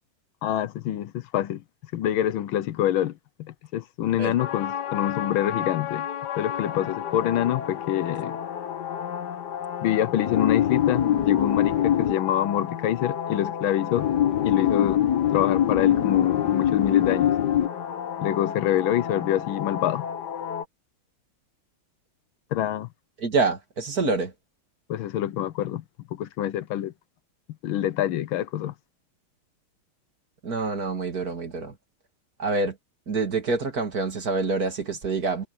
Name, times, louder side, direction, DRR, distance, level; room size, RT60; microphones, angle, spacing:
voice 1, 0.4-1.6 1.9-3.1 3.4-6.1 6.4-8.4 9.8-14.1 14.4-15.1 15.3-17.3 18.2-20.0 22.5-22.9 24.9-25.8 26.1-26.9 27.6-28.7, left 12 dB, 75° left, 1.5 m, -26 dB
sound 1, 4.4-20.6, left 10 dB, 55° left, 1.6 m, -26 dB
voice 2, 23.2-24.3 30.4-31.7 32.4-32.8 33.1-35.4, right 3 dB, 45° right, 2.9 m, -26 dB
omnidirectional pair, 2.3 m